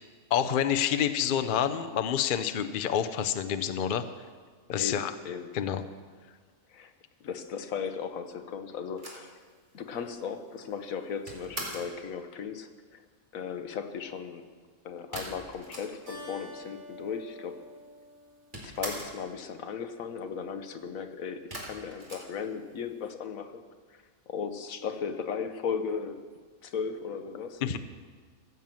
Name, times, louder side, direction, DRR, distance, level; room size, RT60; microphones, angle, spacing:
voice 1, 0.3-4.1 4.7-5.1 5.5-5.8 27.6-27.8, left 9 dB, 55° left, 9 dB, 0.6 m, -28 dB
voice 2, 4.8-5.5 6.7-6.9 7.2-9.4 9.7-13.0 13.3-14.4 14.8-17.6 18.5-23.6 24.3-26.2 26.6-27.6, left 6 dB, 70° left, 8 dB, 1.3 m, -36 dB
sound 1, 9.0-12.0 15.1-16.3 16.6-16.7 16.8-17.6 17.9-19.3 21.5-23.0, right 1 dB, 35° right, 2.5 m, -42 dB
Keyboard (musical), 16.1-18.9, equal, 70° right, 3.7 m, -48 dB
15.0 x 7.3 x 7.6 m, 1.5 s
omnidirectional pair, 1.5 m